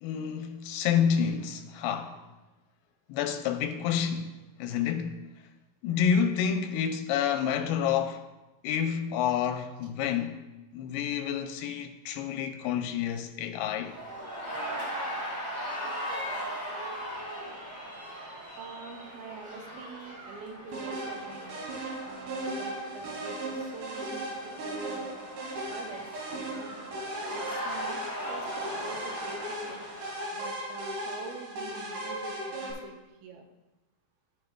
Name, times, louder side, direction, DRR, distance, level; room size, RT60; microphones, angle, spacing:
voice 1, 0.0-2.2 3.1-5.2 5.8-8.2 8.6-10.3 10.7-13.9, left 8 dB, 90° left, 2.5 m, -29 dB
sound 1, 13.8-30.4, equal, 10° right, 1.0 m, -39 dB
voice 2, 18.6-21.6 22.0-25.2 25.7-27.1 27.3-29.8 30.3-33.4, right 4 dB, 80° right, 2.5 m, -45 dB
sound 2, 20.7-32.7, right 1 dB, 60° right, 2.8 m, -37 dB
15.0 x 5.6 x 2.3 m
omnidirectional pair, 4.4 m